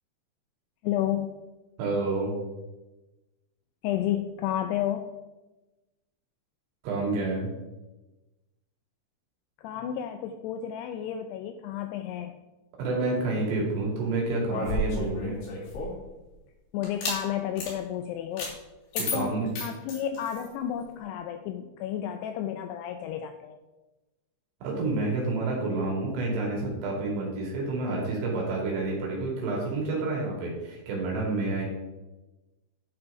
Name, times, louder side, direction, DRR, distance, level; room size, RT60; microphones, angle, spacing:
voice 1, 0.8-1.4 3.8-5.1 9.6-12.3 16.7-18.6 18.9-23.6, left 10 dB, 85° left, 7 dB, 2.4 m, -31 dB
voice 2, 1.8-2.3 6.8-7.5 12.8-15.4 19.1-19.5 24.6-31.6, right 3 dB, 70° right, -2 dB, 4.7 m, -29 dB
sound 1, 14.5-16.0 16.8-17.2 17.6-17.7 18.4-18.5 18.9-20.5, left 2 dB, 65° left, 5.0 m, -32 dB
11.5 x 6.2 x 4.9 m, 1.1 s
omnidirectional pair, 5.2 m